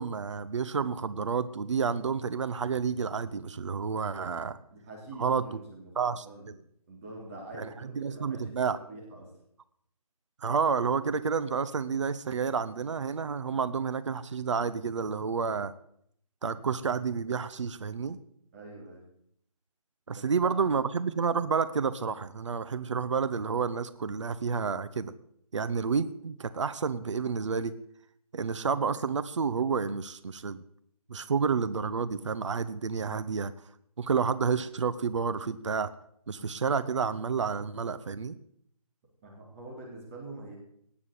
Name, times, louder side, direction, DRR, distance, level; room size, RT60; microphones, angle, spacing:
voice 1, 0.0-4.6 5.2-5.6 6.0-6.5 7.6-8.8 10.4-15.7 16.4-18.2 20.1-25.1 25.5-27.8 28.3-30.6 31.1-33.5 34.0-35.9 36.3-38.4, right 5 dB, 50° right, 14 dB, 0.8 m, -30 dB
voice 2, 4.7-6.5 6.9-9.3 18.5-19.1 20.1-20.6 39.2-40.6, right 2 dB, 20° right, -2 dB, 3.6 m, -45 dB
18.5 x 7.4 x 8.3 m, 0.69 s
figure-of-eight pair, 165°, 20 cm